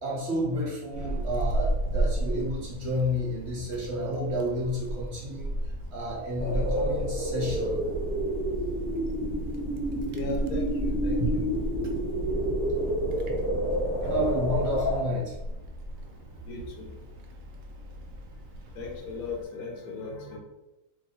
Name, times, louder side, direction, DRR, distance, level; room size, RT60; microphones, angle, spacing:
voice 1, 0.0-5.5 5.9-7.8 14.0-15.3, equal, 50° right, -3 dB, 1.0 m, -31 dB
Wind, 0.9-19.4, right 1 dB, 70° right, 0.6 m, -35 dB
sound 1, 6.4-15.0, right 1 dB, 15° right, 0.6 m, -29 dB
voice 2, 10.1-11.4 16.5-16.9 18.7-20.4, left 2 dB, 80° left, 1 dB, 1.3 m, -35 dB
3.1 x 2.6 x 4.2 m, 1.0 s
omnidirectional pair, 1.7 m